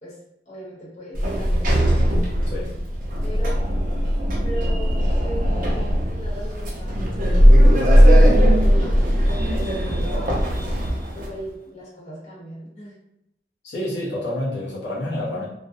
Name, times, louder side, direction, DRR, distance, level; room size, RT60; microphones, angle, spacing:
voice 1, 0.5-1.9 3.2-3.6 4.4-6.9 7.2-7.5 8.2-8.9 9.3-10.5 11.1-12.9, right 1 dB, 40° left, -7 dB, 0.9 m, -37 dB
Sliding door, 1.1-11.3, equal, 50° right, 0.5 m, -18 dB
voice 2, 2.5-2.8 13.6-15.5, left 1 dB, 85° left, -7 dB, 0.7 m, -28 dB
2.4 x 2.0 x 2.6 m, 0.83 s
head